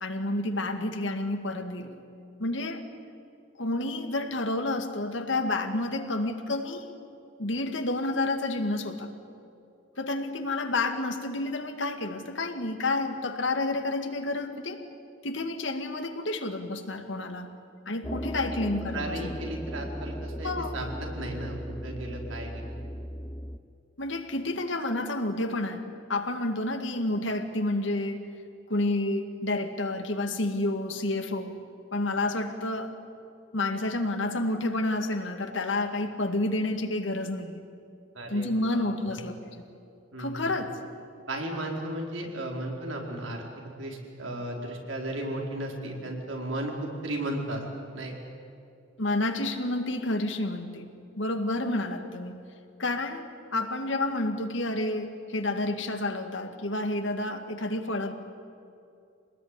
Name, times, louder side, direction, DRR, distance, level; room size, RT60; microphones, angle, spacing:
voice 1, 0.0-2.0 2.4-2.9 3.6-6.9 7.4-9.1 10.0-14.8 15.2-17.6 17.9-19.3 20.4-20.8 24.0-28.2 28.7-31.6 31.9-33.0 33.5-37.6 38.3-39.6 40.2-40.8 49.0-52.4 52.8-53.3 53.5-58.1, left 2 dB, 70° left, 6 dB, 2.3 m, -30 dB
sound 1, 18.0-23.6, equal, 15° left, 0.8 m, -37 dB
voice 2, 18.9-22.8 38.1-39.2 40.1-40.5 41.3-47.6 47.9-48.1, right 1 dB, 80° right, 1 dB, 4.6 m, -35 dB
26.0 x 19.5 x 9.9 m, 2.6 s
head